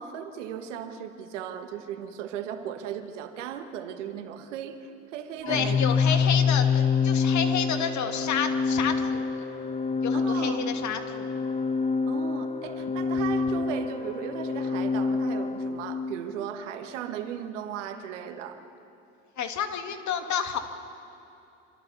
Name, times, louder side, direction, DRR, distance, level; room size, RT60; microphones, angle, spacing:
voice 1, 0.0-6.2 10.1-10.8 12.1-18.6, right 9 dB, 80° right, 7 dB, 1.7 m, -37 dB
Organ, 5.4-16.2, left 5 dB, 15° left, 0.8 m, -27 dB
voice 2, 5.5-9.5 10.0-11.3 19.4-20.6, left 7 dB, 50° left, 6 dB, 2.2 m, -30 dB
27.0 x 25.5 x 4.2 m, 2.8 s
hypercardioid pair, 65°, 36 cm